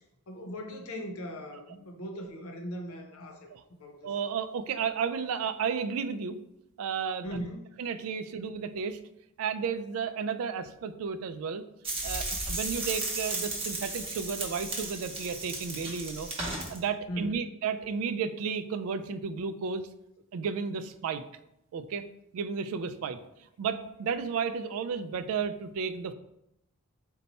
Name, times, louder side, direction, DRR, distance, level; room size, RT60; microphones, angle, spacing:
voice 1, 0.3-3.5 3.8-4.1 7.2-7.8 17.1-17.3, equal, 85° left, 3 dB, 0.7 m, -39 dB
voice 2, 4.0-6.4 6.8-7.4 7.8-9.0 9.4-11.6 12.0-16.3 16.7-19.9 20.3-21.2 21.7-22.0 22.3-23.2 23.6-26.1, right 6 dB, 70° right, 11 dB, 0.3 m, -33 dB
sound 1, 11.8-16.8, right 2 dB, 25° right, 0.8 m, -35 dB
4.0 x 2.2 x 4.1 m, 0.83 s
head